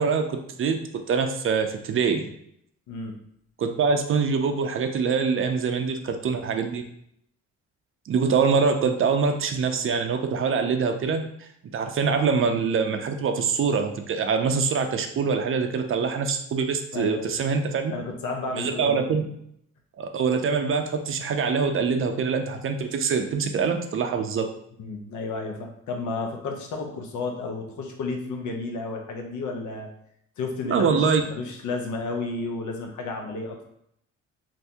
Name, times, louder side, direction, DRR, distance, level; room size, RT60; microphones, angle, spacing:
voice 1, 0.0-2.3 3.6-6.8 8.1-11.3 11.7-17.9 18.5-19.2 20.0-24.5 30.6-31.2, right 5 dB, 45° right, 6 dB, 0.5 m, -24 dB
voice 2, 16.9-17.3 17.9-19.1 24.8-29.9 30.4-33.6, left 3 dB, 75° left, 3 dB, 0.7 m, -32 dB
2.6 x 2.6 x 3.4 m, 0.72 s
cardioid pair, 90°, 30 cm